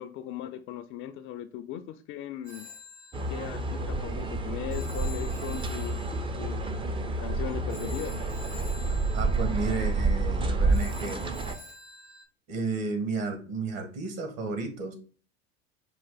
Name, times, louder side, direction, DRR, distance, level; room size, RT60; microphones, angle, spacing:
voice 1, 0.0-2.7 3.3-6.0 6.4-6.6 7.2-8.2, left 11 dB, 40° left, 0.4 m, -38 dB
Telephone, 2.4-12.2, left 4 dB, 75° right, 2.2 m, -49 dB
sound 1, 3.1-11.6, right 3 dB, 15° right, 0.5 m, -29 dB
voice 2, 9.1-11.2 12.5-14.9, right 3 dB, 50° right, 1.5 m, -32 dB
5.7 x 2.5 x 3.8 m
hypercardioid pair, 80°, 33 cm